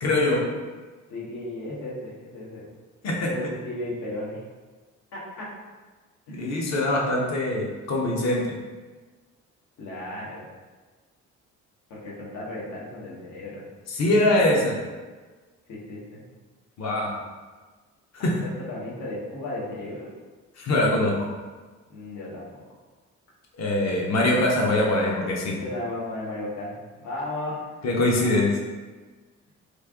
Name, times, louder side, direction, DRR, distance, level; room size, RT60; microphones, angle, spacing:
voice 1, 0.0-0.4 3.0-3.2 6.3-8.4 14.0-14.8 16.8-17.1 18.2-18.3 20.6-21.3 23.6-25.6 27.8-28.5, left 1 dB, 60° left, -2 dB, 0.9 m, -23 dB
voice 2, 1.1-2.7 3.2-4.4 5.1-5.5 6.3-6.6 9.8-10.4 11.9-13.6 15.7-16.2 18.2-20.1 21.9-22.6 25.5-26.7 27.0-27.6, left 1 dB, 85° left, -5 dB, 1.1 m, -35 dB
3.2 x 2.5 x 3.5 m, 1.3 s
cardioid pair, 90°, 30 cm